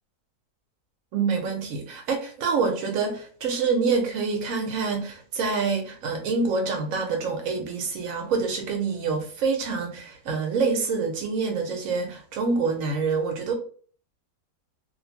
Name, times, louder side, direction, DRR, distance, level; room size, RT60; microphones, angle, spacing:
voice 1, 1.1-13.5, right 4 dB, 70° right, 0.9 m, -26 dB
2.5 x 2.5 x 2.8 m
omnidirectional pair, 1.7 m